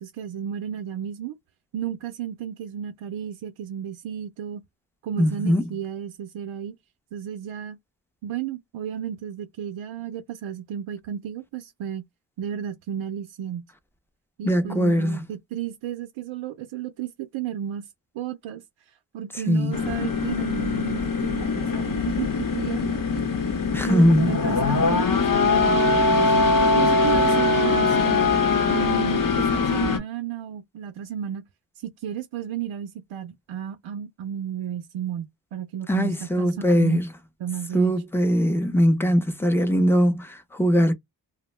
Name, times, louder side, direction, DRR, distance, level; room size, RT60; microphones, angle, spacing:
voice 1, 0.0-1.3 1.7-4.6 5.0-6.7 7.1-7.8 8.2-12.0 12.4-13.7 14.4-17.9 18.1-18.6 19.1-23.3 23.9-28.3 28.7-31.4 31.8-37.0 37.4-38.0, right 9 dB, 85° right, 0.5 m, -33 dB
voice 2, 5.2-5.6 14.4-15.2 19.5-19.7 23.7-24.3 35.9-37.1 37.7-40.9, equal, 5° left, 0.5 m, -21 dB
sound 1, 19.7-30.0, left 3 dB, 45° left, 0.8 m, -22 dB
2.4 x 2.1 x 3.1 m
wide cardioid pair, 95°, 47 cm